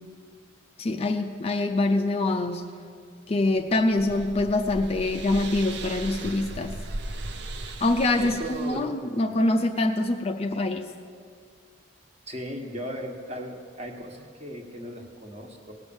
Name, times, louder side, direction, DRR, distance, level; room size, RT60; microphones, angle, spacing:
voice 1, 0.8-2.6 3.3-6.8 7.6-10.9, left 2 dB, 30° left, 5 dB, 0.5 m, -25 dB
sound 1, 3.5-8.9, right 2 dB, 55° right, 0.7 m, -37 dB
voice 2, 8.2-9.0 12.3-15.7, equal, 30° right, 2 dB, 1.3 m, -36 dB
18.0 x 6.2 x 7.1 m, 2.1 s
head